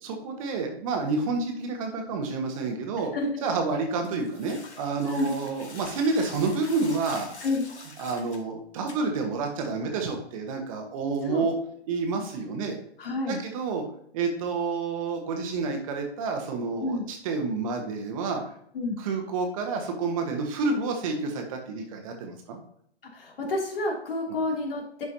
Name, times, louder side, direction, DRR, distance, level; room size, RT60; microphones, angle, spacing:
voice 1, 0.0-3.1 3.4-7.3 8.0-11.5 11.9-12.8 13.3-13.8 14.1-18.4 19.0-22.6, right 4 dB, 30° right, 3 dB, 1.2 m, -29 dB
voice 2, 3.1-3.4 5.1-5.3 7.4-7.6 11.2-11.5 13.0-13.4 16.8-17.0 18.7-18.9 23.1-25.0, left 2 dB, 55° left, -1 dB, 2.8 m, -29 dB
sound 1, 4.0-8.4 8.9-9.0, left 3 dB, 75° left, 2.0 m, -45 dB
11.0 x 4.8 x 2.8 m, 0.68 s
figure-of-eight pair, 135°, 34 cm